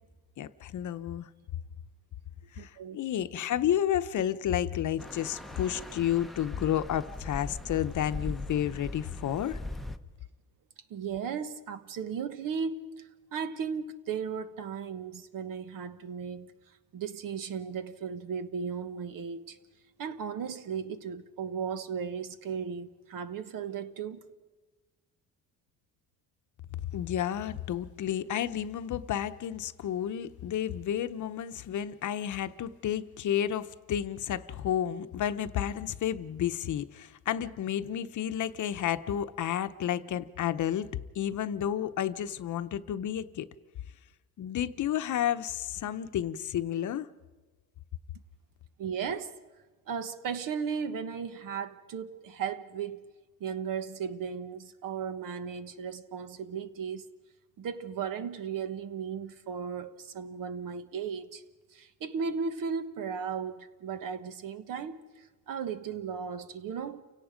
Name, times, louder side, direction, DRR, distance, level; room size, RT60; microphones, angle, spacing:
voice 1, 0.4-1.3 2.5-9.6 26.9-40.9 41.1-43.5 44.4-47.1, left 10 dB, 55° left, 0.9 m, -31 dB
voice 2, 2.6-3.0 10.9-12.8 13.3-16.5 16.9-19.6 20.0-24.3 48.8-49.3 49.9-53.0 53.4-57.0 57.6-61.4 61.7-65.0 65.5-67.0, right 6 dB, 65° right, 1.4 m, -36 dB
sound 1, 5.0-10.0, left 2 dB, ahead, 0.8 m, -40 dB
29.5 x 17.5 x 5.1 m
cardioid pair, 135°, 35 cm